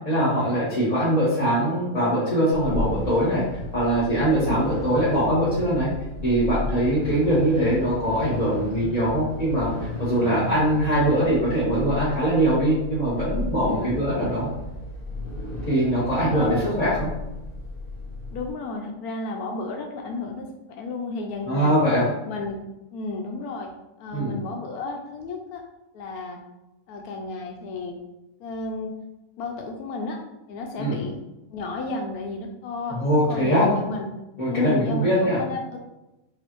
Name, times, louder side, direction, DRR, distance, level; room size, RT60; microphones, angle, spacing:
voice 1, 0.0-3.4 3.7-5.9 6.2-9.7 10.0-14.5 15.7-17.1 21.5-22.1 24.1-24.4 30.8-31.0 32.9-33.7 34.4-35.4, right 1 dB, 30° left, -11 dB, 1.3 m, -22 dB
sound 1, 2.5-18.5, left 2 dB, 65° left, 2.0 m, -34 dB
voice 2, 16.3-16.6 18.3-21.9 22.2-22.6 22.9-23.7 24.0-25.7 25.9-26.4 26.9-27.9 28.4-28.9 29.4-30.2 30.5-31.2 31.5-34.1 34.5-35.8, left 3 dB, 85° left, 2 dB, 1.1 m, -32 dB
6.9 x 2.5 x 2.9 m, 0.98 s
omnidirectional pair, 1.6 m